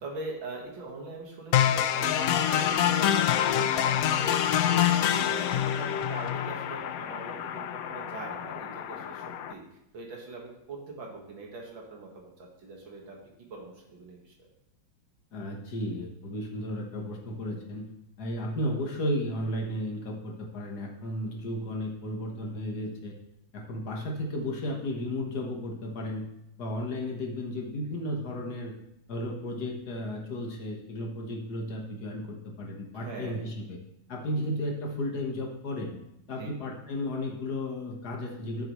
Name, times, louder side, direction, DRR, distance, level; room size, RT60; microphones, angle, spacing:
voice 1, 0.0-9.2 9.5-9.6 9.9-14.5 32.9-33.4 36.4-36.5, right 3 dB, 80° right, -1 dB, 2.5 m, -42 dB
sound 1, 1.5-9.5, left 10 dB, 75° left, 0.8 m, -26 dB
voice 2, 15.3-17.9 18.2-23.1 23.5-26.3 26.6-28.7 29.1-33.8 34.1-35.9 36.3-38.6, left 1 dB, 60° left, 0 dB, 1.8 m, -34 dB
12.0 x 6.8 x 3.1 m, 0.83 s
omnidirectional pair, 2.1 m